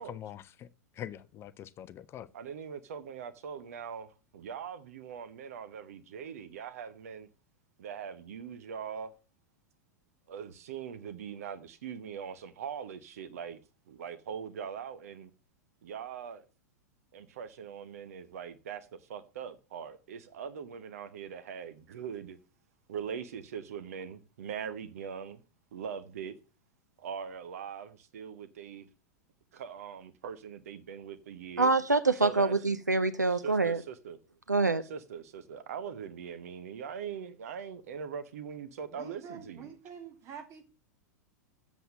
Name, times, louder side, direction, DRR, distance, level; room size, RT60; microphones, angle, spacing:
voice 1, 0.0-0.7 0.9-2.3, left 11 dB, 30° left, 0.6 m, -44 dB
voice 2, 2.3-7.3 7.8-9.1 10.3-13.6 13.9-15.3 15.8-16.4 17.1-22.4 22.9-25.4 25.7-26.4 27.0-28.9 29.5-31.7 32.1-32.5 33.3-34.2 34.8-39.7, right 7 dB, 60° right, 1.0 m, -41 dB
voice 3, 31.6-33.8 34.5-34.8, right 3 dB, 85° right, 0.7 m, -25 dB
voice 4, 38.9-40.6, right 7 dB, 35° right, 2.4 m, -46 dB
7.9 x 7.2 x 7.3 m
figure-of-eight pair, 90°, 9 cm